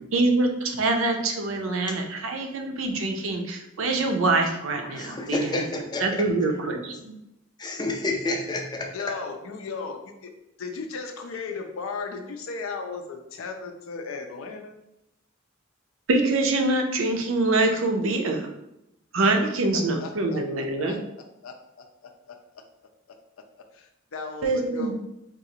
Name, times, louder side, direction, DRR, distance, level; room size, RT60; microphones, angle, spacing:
voice 1, 0.1-5.6 6.0-7.2 16.1-18.5 19.1-21.0 24.4-24.9, right 2 dB, 70° right, 4 dB, 0.5 m, -24 dB
voice 2, 4.8-6.2 7.6-8.9, left 2 dB, 20° left, 2 dB, 0.4 m, -29 dB
voice 3, 8.9-10.3 10.6-14.8 19.7-20.4 20.8-21.0 21.4-22.4 23.1-23.2 23.7-24.9, left 4 dB, 85° left, 4 dB, 0.5 m, -36 dB
3.9 x 2.4 x 2.8 m, 0.86 s
head